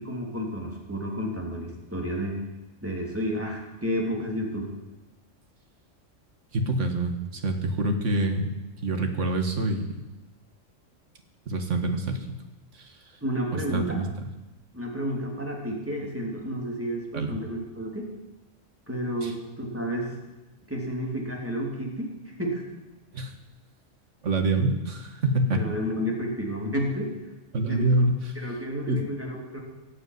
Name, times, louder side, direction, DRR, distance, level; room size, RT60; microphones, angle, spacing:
voice 1, 0.0-2.4 2.8-4.7 13.2-14.0 14.7-18.1 18.9-20.1 20.7-22.6 25.5-27.1 27.7-28.0 28.3-29.6, equal, 10° right, -1 dB, 3.2 m, -31 dB
voice 2, 6.5-8.5 8.8-10.0 11.5-12.2 13.7-14.1 17.1-17.3 19.2-19.3 23.1-23.3 24.2-25.6 27.5-28.1 28.9-29.0, right 1 dB, 70° right, 6 dB, 2.0 m, -25 dB
17.5 x 6.9 x 9.5 m, 1.1 s
omnidirectional pair, 1.3 m